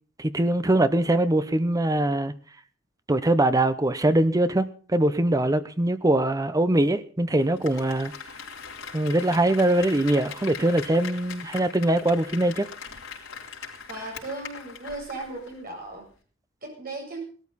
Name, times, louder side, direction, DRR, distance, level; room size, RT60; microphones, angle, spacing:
voice 1, 0.2-2.3 3.1-8.1 8.9-12.7, right 1 dB, 15° right, 0.8 m, -22 dB
Applause, 7.4-15.6 15.9-16.0, left 6 dB, 80° left, 3.8 m, -41 dB
voice 2, 13.9-16.1 16.6-17.3, right 2 dB, 45° right, 7.8 m, -36 dB
18.0 x 13.0 x 4.1 m
head